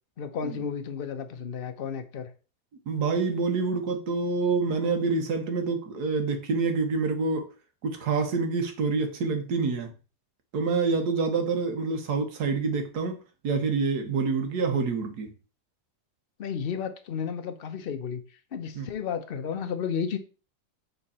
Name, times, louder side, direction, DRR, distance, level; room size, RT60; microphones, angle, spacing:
voice 1, 0.2-2.3 16.4-18.2 18.5-20.2, left 7 dB, 45° left, 0.7 m, -32 dB
voice 2, 2.9-7.5 7.8-9.9 10.5-15.3 18.7-18.9, right 4 dB, 70° right, 1.7 m, -27 dB
7.0 x 3.8 x 4.2 m
omnidirectional pair, 1.8 m